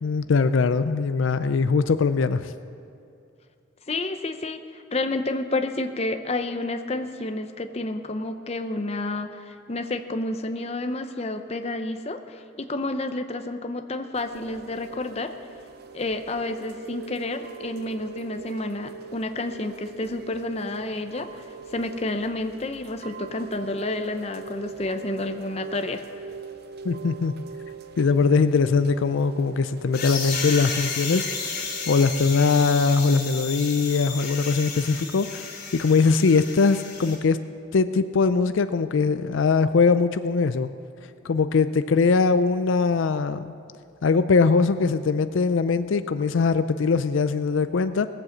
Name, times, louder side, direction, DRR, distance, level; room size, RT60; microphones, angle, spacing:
voice 1, 0.0-2.5 26.8-27.3 28.0-37.4 37.7-40.7 41.2-43.5 44.0-48.1, left 4 dB, 75° left, 11 dB, 0.4 m, -21 dB
voice 2, 3.9-15.3 15.9-21.4 21.7-26.0, left 2 dB, 30° left, 7 dB, 0.7 m, -30 dB
Chime / Rain, 14.1-32.5, right 5 dB, 50° right, 0.6 m, -42 dB
sound 1, 29.9-37.1, left 5 dB, 50° left, 2.6 m, -33 dB
19.0 x 7.9 x 7.2 m, 2.6 s
head